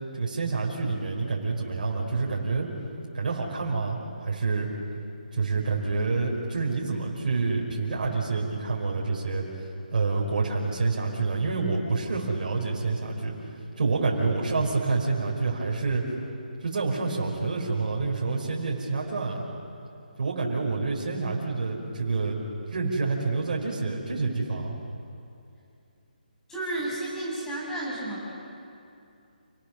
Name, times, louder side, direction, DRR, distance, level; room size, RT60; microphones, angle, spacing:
voice 1, 0.1-2.7 3.1-4.7 5.3-9.4 9.9-13.3 13.8-16.0 16.6-19.4 20.2-22.4 22.7-24.7, right 4 dB, 65° right, -1 dB, 4.6 m, -27 dB
voice 2, 26.5-28.3, right 1 dB, 10° left, -6 dB, 7.5 m, -32 dB
28.5 x 19.0 x 6.3 m, 2.6 s
figure-of-eight pair, 155°, 5 cm